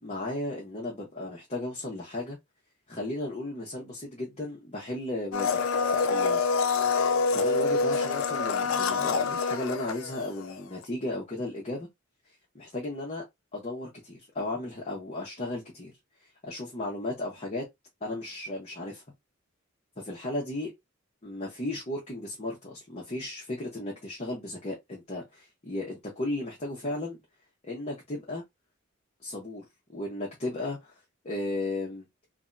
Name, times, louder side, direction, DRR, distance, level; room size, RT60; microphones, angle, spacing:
voice 1, 0.0-2.4 2.9-6.4 7.3-11.9 12.5-13.2 13.5-15.9 16.4-17.6 18.0-19.0 20.0-20.7 21.2-27.2 27.6-28.4 29.2-30.9 31.2-32.1, left 1 dB, 30° left, 0.9 m, -35 dB
Domestic sounds home sounds, 5.3-10.6 10.8-10.9, left 4 dB, 75° left, 0.4 m, -26 dB
3.4 x 2.2 x 2.6 m
head